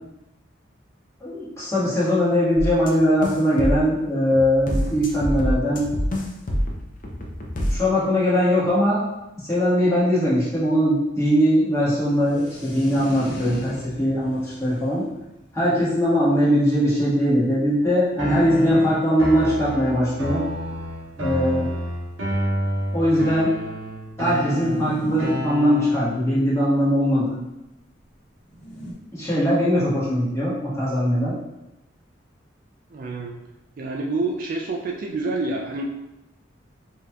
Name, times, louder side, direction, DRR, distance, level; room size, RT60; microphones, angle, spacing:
voice 1, 1.2-5.9 7.7-9.0 9.4-15.0 15.5-20.4 21.2-21.7 22.9-23.5 24.2-27.4 29.1-31.3, equal, 15° left, -9 dB, 1.3 m, -21 dB
sound 1, 2.6-2.9 3.2-3.9 4.3-7.8, equal, 45° left, 0.5 m, -26 dB
sound 2, 11.7-17.9 18.5-18.6 18.8-18.9 19.0-19.3 20.2-20.3 20.5-20.6 21.4-22.9 24.4-27.0 28.4-28.9, equal, 80° left, 1.3 m, -40 dB
sound 3, 18.2-26.2, equal, 90° right, 0.9 m, -29 dB
voice 2, 32.9-33.3 33.8-35.9, right 3 dB, 45° right, 1 dB, 0.3 m, -27 dB
5.1 x 2.8 x 2.3 m, 0.93 s
head